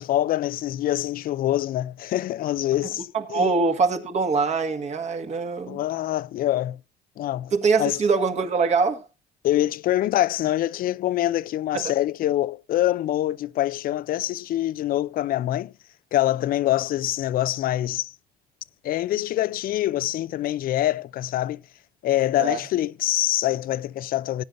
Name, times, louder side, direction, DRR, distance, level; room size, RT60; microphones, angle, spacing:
voice 1, 0.0-3.5 5.7-6.8 7.2-7.5 7.8-8.0 9.4-15.7 16.1-18.1 18.8-21.6 22.0-24.4, left 13 dB, 60° left, 0.5 m, -25 dB
voice 2, 3.1-5.8 7.5-9.0 11.7-11.8 22.4-22.6, right 4 dB, 40° right, 1.8 m, -23 dB
18.5 x 9.2 x 2.6 m
cardioid pair, 110°, 17 cm